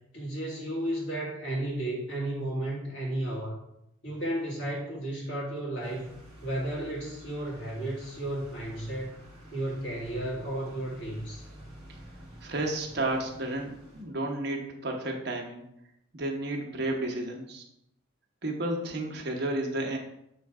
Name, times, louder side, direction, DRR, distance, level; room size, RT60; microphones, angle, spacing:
voice 1, 0.1-3.6 4.0-6.1 6.4-9.2 9.5-11.4, right 1 dB, 60° left, -5 dB, 2.3 m, -33 dB
sound 1, 5.8-14.0, equal, ahead, 1.7 m, -49 dB
voice 2, 12.4-15.6 16.1-17.6 18.4-20.0, right 2 dB, 50° right, 1 dB, 0.9 m, -32 dB
6.9 x 3.2 x 4.7 m, 0.79 s
head